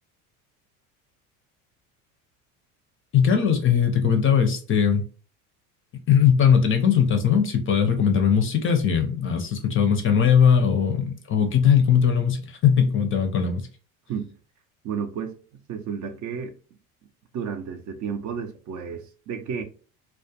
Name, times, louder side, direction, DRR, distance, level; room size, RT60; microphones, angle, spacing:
voice 1, 3.1-5.0 6.1-13.6, left 7 dB, 30° left, 0.5 m, -20 dB
voice 2, 14.8-15.4 15.7-16.5 17.3-19.6, right 7 dB, 45° right, 0.5 m, -32 dB
2.3 x 2.1 x 2.7 m
hypercardioid pair, 75°, 43 cm